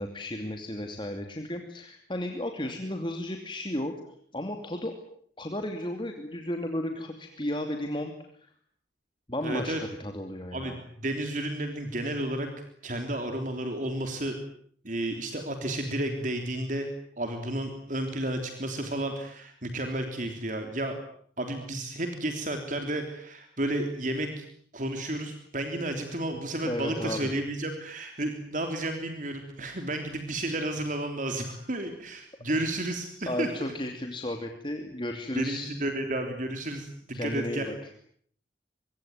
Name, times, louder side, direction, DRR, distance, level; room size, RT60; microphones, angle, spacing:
voice 1, 0.0-3.9 4.3-4.9 5.4-8.1 9.3-10.8 26.6-27.3 33.3-35.7 37.1-37.7, left 1 dB, 25° left, 5 dB, 2.7 m, -33 dB
voice 2, 9.4-9.8 10.5-12.5 12.8-14.4 14.8-16.9 17.2-21.0 21.4-24.4 24.7-33.5 35.3-37.7, right 1 dB, 45° right, 5 dB, 3.4 m, -32 dB
25.5 x 22.5 x 9.4 m, 0.62 s
head